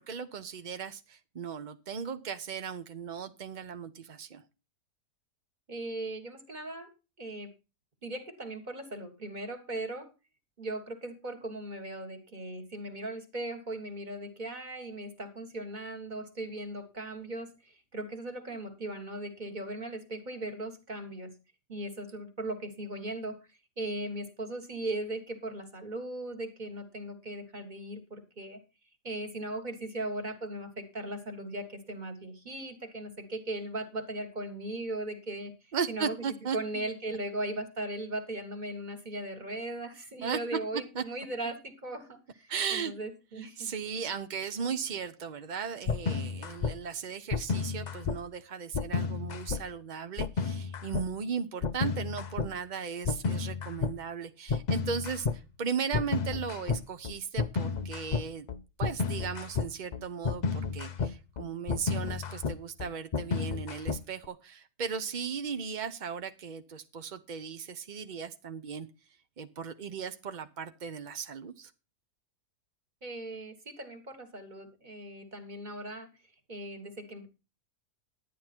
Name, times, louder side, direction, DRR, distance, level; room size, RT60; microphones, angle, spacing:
voice 1, 0.0-4.4 35.7-36.9 40.2-40.4 40.9-41.0 42.5-42.9 43.4-58.5 58.8-68.9 69.4-71.7, right 6 dB, 55° right, 10 dB, 0.5 m, -37 dB
voice 2, 5.7-6.9 7.2-7.5 8.0-10.1 10.6-21.3 21.7-23.4 23.8-28.6 29.0-35.5 35.9-36.2 36.5-43.7 73.0-76.1 76.5-77.3, right 1 dB, 30° right, 6 dB, 1.7 m, -38 dB
sound 1, 45.9-46.7 47.3-48.2 48.7-49.6 50.2-51.0 51.6-52.5 53.0-53.9 54.5-55.4 55.9-64.3, left 5 dB, 75° left, 0.4 m, -31 dB
12.0 x 9.4 x 4.4 m, 0.31 s
omnidirectional pair, 1.7 m